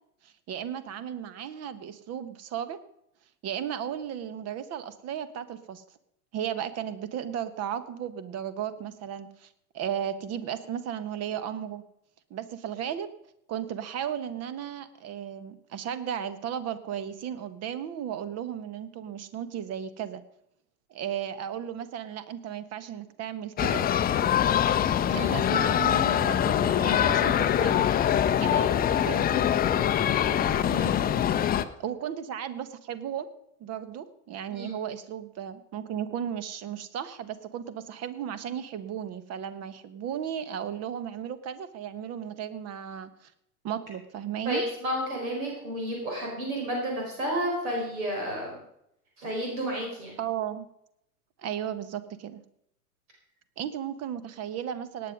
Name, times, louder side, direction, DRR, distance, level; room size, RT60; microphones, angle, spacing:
voice 1, 0.2-2.8 3.4-5.8 6.3-9.5 9.7-11.8 12.3-13.1 13.5-20.2 20.9-23.9 25.1-27.8 28.4-29.5 31.8-33.3 33.6-43.3 43.6-44.6 50.2-50.7 51.4-52.4 53.6-55.1, right 9 dB, 35° right, 14 dB, 1.3 m, -35 dB
sound 1, 23.6-31.6, left 10 dB, 20° left, 0.7 m, -24 dB
voice 2, 30.6-31.3 34.5-34.8 44.4-48.6 49.2-50.2, equal, 65° right, -1 dB, 4.8 m, -32 dB
18.0 x 9.6 x 5.2 m, 0.77 s
figure-of-eight pair, 80°, 45 cm